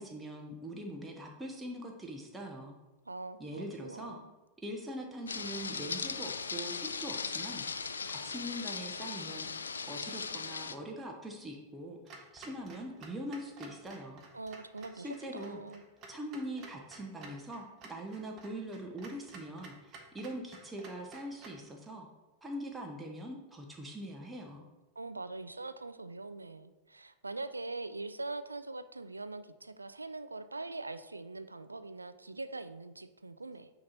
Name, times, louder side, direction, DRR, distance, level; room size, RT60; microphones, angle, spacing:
voice 1, 0.0-2.7 3.4-4.2 4.6-7.6 8.2-9.5 9.9-14.2 14.9-15.6 16.1-22.1 22.4-24.7, equal, 10° right, 0 dB, 0.8 m, -42 dB
voice 2, 3.1-4.3 14.3-15.8 25.0-33.7, right 2 dB, 80° right, 12 dB, 0.3 m, -43 dB
sound 1, 5.3-10.8, left 5 dB, 75° left, 0.3 m, -38 dB
Clock, 12.1-21.7, right 3 dB, 35° right, 0.9 m, -53 dB
8.7 x 3.0 x 4.1 m, 1.1 s
figure-of-eight pair, 90°, 0 cm